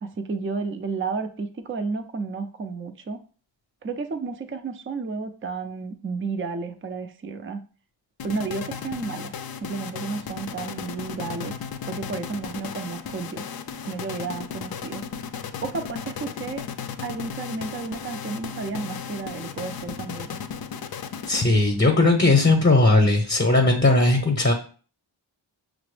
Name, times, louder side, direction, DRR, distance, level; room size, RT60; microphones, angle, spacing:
voice 1, 0.0-3.2 3.8-7.6 8.2-9.3 9.6-11.5 11.8-13.4 13.8-15.0 15.6-16.6 17.0-20.3, right 4 dB, 25° right, 8 dB, 0.5 m, -32 dB
sound 1, 8.2-21.8, left 7 dB, 50° left, 0.5 m, -35 dB
voice 2, 21.3-24.5, left 2 dB, 25° left, 2 dB, 0.9 m, -18 dB
5.7 x 2.0 x 3.3 m, 0.40 s
cardioid pair, 40°, 48 cm